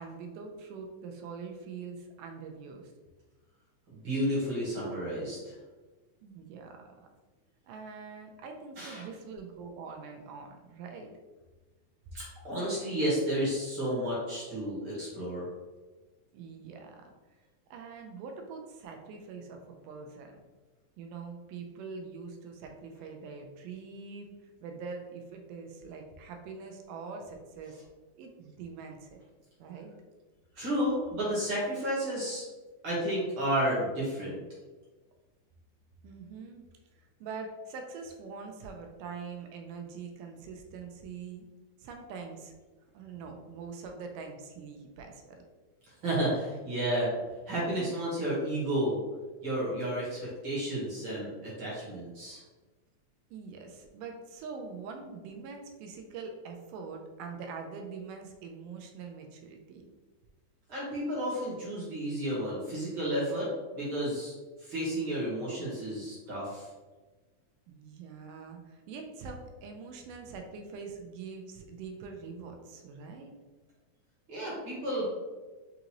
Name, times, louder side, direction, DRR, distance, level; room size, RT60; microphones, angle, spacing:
voice 1, 0.0-2.9 6.2-6.9 7.7-11.1 16.3-17.1 17.7-20.4 21.0-27.8 28.2-29.2 29.6-30.0 36.0-36.7 36.9-41.5 41.8-42.6 42.9-45.2 53.3-59.9 67.7-73.3, right 5 dB, 80° right, 3 dB, 2.1 m, -44 dB
voice 2, 3.9-5.5 8.8-9.0 12.1-15.4 30.5-32.4 32.8-34.4 46.0-47.1 47.5-49.0 49.4-52.4 60.7-63.5 63.7-64.3 64.6-66.7 74.3-75.1, right 1 dB, 55° right, -7 dB, 1.5 m, -32 dB
5.7 x 2.6 x 2.9 m, 1.3 s
omnidirectional pair, 3.8 m